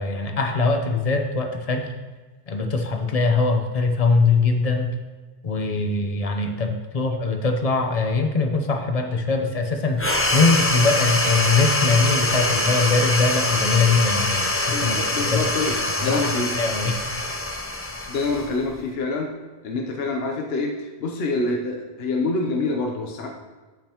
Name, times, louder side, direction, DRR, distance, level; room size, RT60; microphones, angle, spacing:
voice 1, 0.0-1.9 2.5-5.0 5.4-15.0 15.3-15.4 16.0-16.9, left 3 dB, 35° left, 4 dB, 0.9 m, -22 dB
sound 1, 10.0-18.9, left 2 dB, 15° left, 0.6 m, -24 dB
voice 2, 14.7-15.7 16.0-16.5 18.1-19.3 19.6-23.3, left 3 dB, 65° left, 1 dB, 1.0 m, -26 dB
13.0 x 5.2 x 3.0 m, 1.3 s
omnidirectional pair, 1.1 m